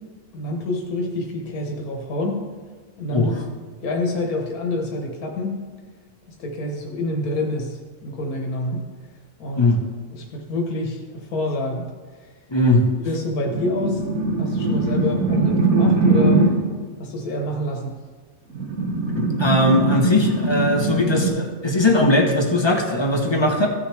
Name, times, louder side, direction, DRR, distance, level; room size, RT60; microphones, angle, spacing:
voice 1, 0.3-2.4 3.0-3.4 3.8-5.6 6.4-8.8 9.4-9.7 10.1-11.8 13.0-14.0 14.4-16.4 17.0-17.9, left 2 dB, 90° left, 1 dB, 1.6 m, -27 dB
voice 2, 12.5-12.9 19.2-23.7, left 1 dB, 20° left, 1 dB, 1.0 m, -19 dB
sound 1, 13.4-16.7 18.5-21.3, right 3 dB, 85° right, 1.9 m, -21 dB
15.5 x 6.5 x 3.3 m, 1.5 s
omnidirectional pair, 1.5 m